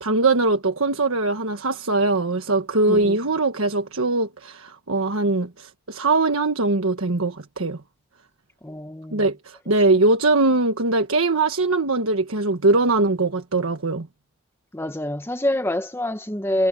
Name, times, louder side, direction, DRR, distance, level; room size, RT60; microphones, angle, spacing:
voice 1, 0.0-7.8 9.1-14.1, right 2 dB, 85° right, 1.4 m, -21 dB
voice 2, 8.6-9.2 14.7-16.7, left 1 dB, 10° left, 1.0 m, -26 dB
head